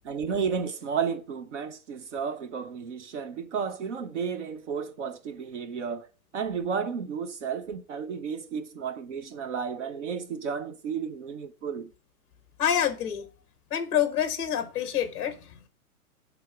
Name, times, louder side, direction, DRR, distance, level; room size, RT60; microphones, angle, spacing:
voice 1, 0.0-6.1 6.3-11.9, right 6 dB, 55° right, 1.0 m, -32 dB
voice 2, 12.6-13.3 13.7-15.7, left 9 dB, 20° left, 1.1 m, -27 dB
10.5 x 3.8 x 5.9 m
hypercardioid pair, 180°, 44 cm